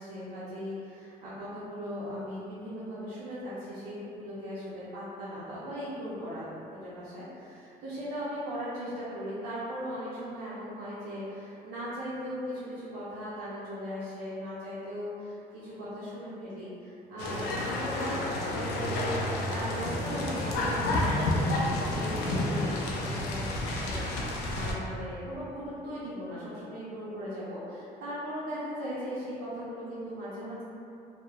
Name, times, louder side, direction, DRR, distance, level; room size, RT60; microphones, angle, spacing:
voice 1, 0.0-30.6, equal, 85° right, -9 dB, 0.5 m, -38 dB
sound 1, 17.2-24.7, left 1 dB, 85° left, 0.4 m, -30 dB
2.8 x 2.0 x 2.3 m, 2.8 s
cardioid pair, 110°, 17 cm